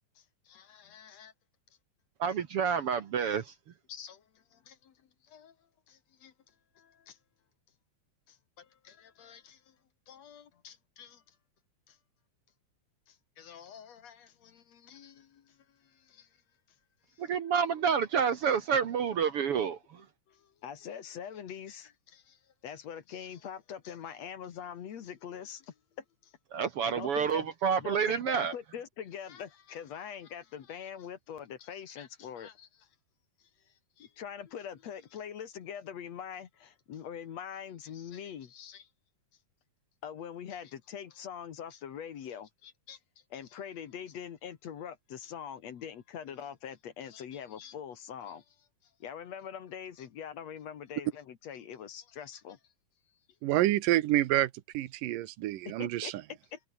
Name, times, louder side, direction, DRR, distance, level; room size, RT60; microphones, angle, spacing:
voice 1, 0.2-1.3 3.9-4.9 5.2-5.6 5.9-6.3 6.8-7.2 8.3-9.8 10.1-11.2 11.9-12.0 13.1-16.3 17.1-17.3 20.3-26.3 26.8-27.5 27.8-32.9 34.0-38.9 40.0-43.0 43.3-48.7 49.0-52.6 55.6-56.6, left 8 dB, 60° left, 2.6 m, -44 dB
voice 2, 2.2-3.5 17.2-20.0 26.5-28.5, right 7 dB, 55° right, 1.7 m, -29 dB
voice 3, 53.4-56.1, right 15 dB, 85° right, 2.6 m, -28 dB
omnidirectional pair, 3.8 m